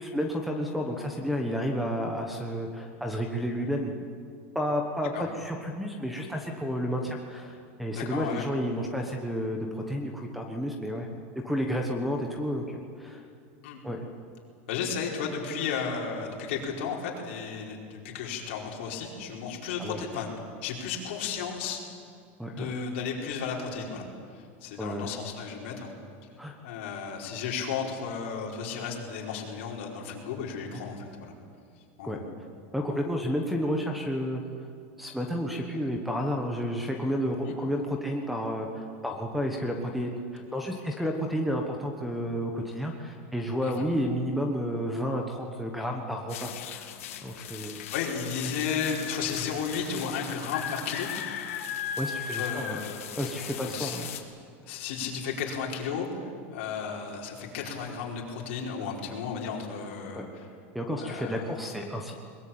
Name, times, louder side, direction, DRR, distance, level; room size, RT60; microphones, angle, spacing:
voice 1, 0.0-4.0 4.5-11.1 11.4-13.2 13.8-14.0 19.8-20.0 22.4-22.8 24.8-25.1 26.4-26.5 30.7-31.0 32.0-32.2 32.7-34.4 35.0-46.9 47.2-47.8 52.0-52.8 53.2-54.1 60.1-60.2 60.7-62.1, equal, ahead, 3 dB, 1.2 m, -31 dB
voice 2, 7.9-8.5 13.6-13.8 14.7-20.3 20.6-21.8 22.5-24.0 24.6-25.9 26.6-31.3 32.0-32.2 37.5-37.6 43.6-43.9 47.9-51.1 52.3-53.1 53.7-54.0 54.7-60.2 61.0-61.5, left 6 dB, 55° left, -1 dB, 4.9 m, -33 dB
sound 1, 46.3-54.2, left 9 dB, 80° left, 2.5 m, -37 dB
22.0 x 21.0 x 8.8 m, 2.3 s
supercardioid pair, 180°, 7 cm